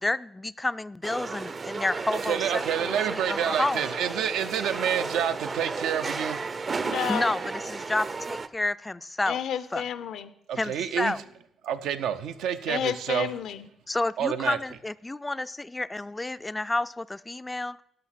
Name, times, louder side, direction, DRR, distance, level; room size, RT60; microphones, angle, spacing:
voice 1, 0.0-3.9 7.1-9.4 9.7-9.8 10.6-11.2 13.9-17.8, left 2 dB, 15° left, 0.3 m, -30 dB
sound 1, 1.0-8.5, right 4 dB, 35° right, 0.5 m, -33 dB
voice 2, 2.1-6.4 10.5-11.2 11.6-13.3 14.2-14.6, right 9 dB, 85° right, 0.6 m, -28 dB
voice 3, 6.8-7.3 9.3-10.3 12.7-13.7, left 9 dB, 75° left, 0.7 m, -31 dB
12.0 x 5.7 x 5.8 m
cardioid pair, 90°, 0 cm